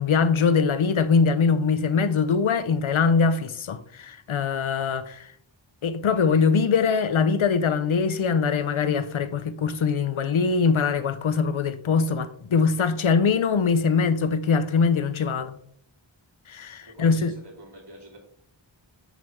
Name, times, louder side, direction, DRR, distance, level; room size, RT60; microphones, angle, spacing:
voice 1, 0.0-5.3 5.8-15.6 16.5-17.3, left 5 dB, 80° left, 0.6 m, -22 dB
voice 2, 16.9-18.2, equal, 55° right, 2.5 m, -45 dB
7.4 x 5.6 x 3.5 m
wide cardioid pair, 55°, 48 cm